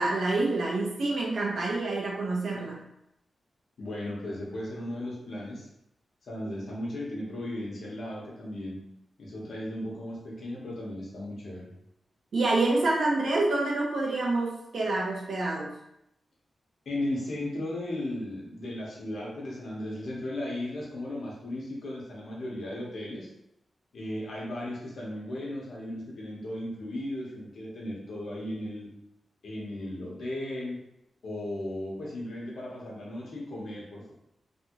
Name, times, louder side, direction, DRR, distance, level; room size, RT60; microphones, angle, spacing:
voice 1, 0.0-2.8 12.3-15.7, right 2 dB, 75° right, -3 dB, 1.0 m, -27 dB
voice 2, 3.8-5.7 6.2-8.8 9.2-11.7 16.8-23.3 23.9-28.9 29.4-30.8 31.2-34.1, left 1 dB, 75° left, -4 dB, 1.1 m, -36 dB
3.3 x 2.6 x 3.0 m, 0.80 s
wide cardioid pair, 110°, 0 cm